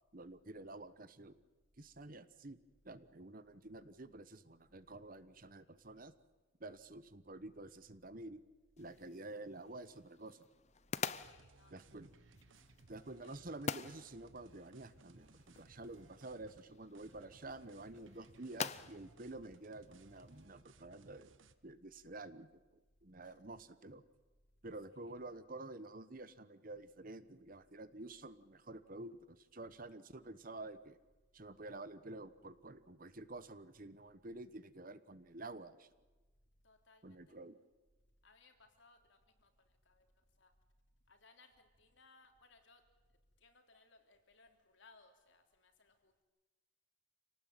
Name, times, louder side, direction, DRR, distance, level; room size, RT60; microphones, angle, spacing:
voice 1, 0.1-1.3 1.8-2.6 2.8-6.1 6.6-8.4 8.8-10.4 11.7-12.1 12.9-21.4 21.6-24.0 24.6-31.0 31.3-35.9 37.0-37.6, right 2 dB, 45° right, 14 dB, 1.1 m, -50 dB
sound 1, 8.8-20.5, left 5 dB, 35° left, 0.7 m, -48 dB
sound 2, 11.2-16.6 16.9-21.5, right 3 dB, 75° right, 1.2 m, -64 dB
voice 2, 11.3-12.0 13.2-13.4 23.2-23.3 36.6-37.4 38.2-39.5 39.9-40.1 40.4-40.5 41.1-42.8 43.4-46.2, left 3 dB, 70° left, 5 dB, 3.4 m, -66 dB
27.0 x 18.5 x 9.1 m, 1.2 s
head